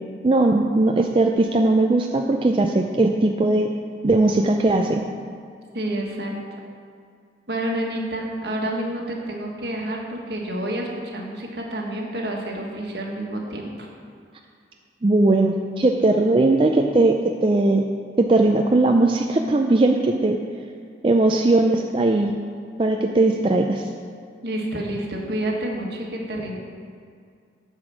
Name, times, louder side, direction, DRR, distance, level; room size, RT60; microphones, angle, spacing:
voice 1, 0.2-3.7 4.0-5.0 15.0-17.2 17.4-17.8 18.2-20.4 21.0-22.4 22.8-23.8, right 2 dB, 30° right, 2 dB, 0.4 m, -19 dB
voice 2, 5.7-6.3 7.5-13.9 24.4-26.6, right 1 dB, 65° right, -1 dB, 1.5 m, -29 dB
8.9 x 4.9 x 7.4 m, 2.3 s
head